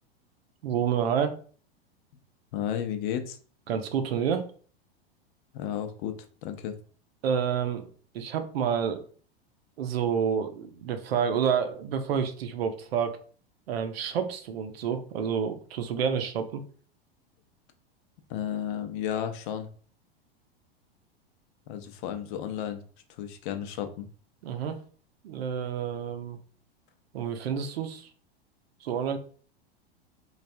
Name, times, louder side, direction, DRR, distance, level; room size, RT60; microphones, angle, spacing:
voice 1, 0.6-1.4 3.7-4.5 7.2-9.0 9.8-13.2 13.7-16.6 24.4-24.8 25.2-26.4 27.1-28.1 28.8-29.2, right 7 dB, 75° right, 7 dB, 0.6 m, -29 dB
voice 2, 2.5-3.4 5.5-6.1 6.4-6.8 18.3-19.7 21.7-22.8 23.2-24.1, left 9 dB, 55° left, 8 dB, 0.6 m, -33 dB
3.3 x 2.3 x 2.6 m, 0.43 s
hypercardioid pair, 105°, 30 cm